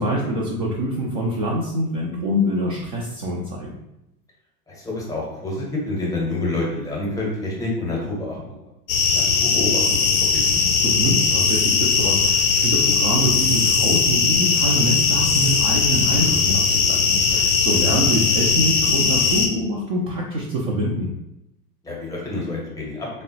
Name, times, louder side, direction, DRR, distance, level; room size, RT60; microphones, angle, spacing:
voice 1, 0.0-3.8 10.8-21.1, right 1 dB, 35° right, -3 dB, 0.4 m, -25 dB
voice 2, 4.7-8.5 9.1-10.0 10.3-10.6 17.7-18.0 21.8-23.1, left 2 dB, 5° left, -4 dB, 0.7 m, -28 dB
sound 1, 8.9-19.5, left 5 dB, 30° left, 0.4 m, -19 dB
3.4 x 2.0 x 2.7 m, 0.87 s
figure-of-eight pair, 90°, 47 cm